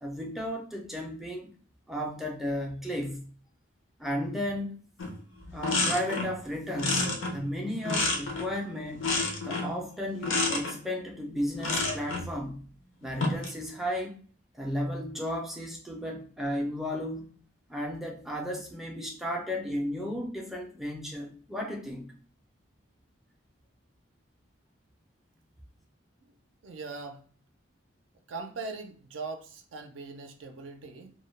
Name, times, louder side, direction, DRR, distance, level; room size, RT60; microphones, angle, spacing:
voice 1, 0.0-1.5 1.9-3.3 4.0-4.8 5.5-9.1 9.4-12.6 13.0-14.2 14.5-17.3 17.7-22.1, equal, ahead, 0 dB, 0.3 m, -34 dB
sound 1, 5.0-5.2 5.4-6.4 6.8-8.6 9.0-9.8 10.2-10.8 11.6-12.3 13.0-13.6, left 3 dB, 80° left, 0.5 m, -29 dB
voice 2, 26.6-27.2 28.3-31.1, right 3 dB, 75° right, 5 dB, 0.4 m, -40 dB
2.2 x 2.1 x 3.1 m, 0.42 s
head